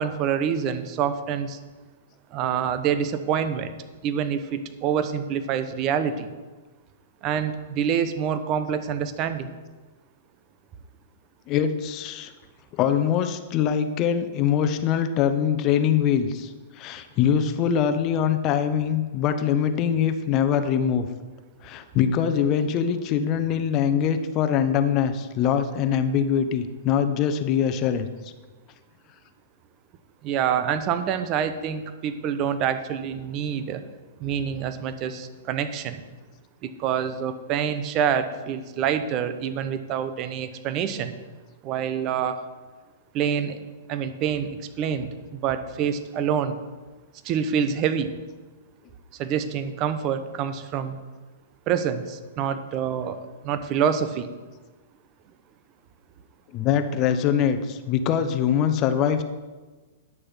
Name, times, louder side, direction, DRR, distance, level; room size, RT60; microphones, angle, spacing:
voice 1, 0.0-1.6 2.3-3.7 4.0-6.3 7.2-9.5 30.2-33.8 34.2-36.0 36.6-41.1 41.6-42.4 43.1-43.6 43.9-46.6 47.2-48.1 49.2-51.0 51.7-54.3, right 8 dB, 35° right, 10 dB, 0.9 m, -26 dB
voice 2, 11.5-12.3 12.7-21.0 21.6-28.1 56.5-59.2, left 8 dB, 35° left, 9 dB, 0.9 m, -23 dB
10.5 x 6.7 x 5.7 m, 1.3 s
hypercardioid pair, 130°, 0 cm